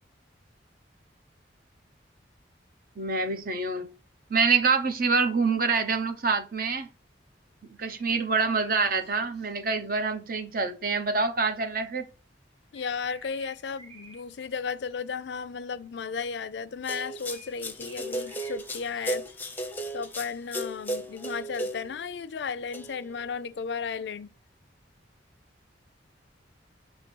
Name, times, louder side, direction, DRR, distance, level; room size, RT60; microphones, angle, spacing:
voice 1, 3.0-3.9 4.3-6.9 7.7-12.1, right 4 dB, 55° right, 0.9 m, -26 dB
sound 1, 7.8-9.9 12.7-14.6 14.9-15.2 16.9-18.6 18.9-19.6, right 2 dB, 30° right, 3.3 m, -53 dB
voice 2, 12.7-19.3 19.9-24.3, left 5 dB, 70° left, 0.4 m, -34 dB
sound 2, 16.8-22.0 22.7-23.2, right 1 dB, 10° left, 0.7 m, -35 dB
6.0 x 3.0 x 5.3 m
head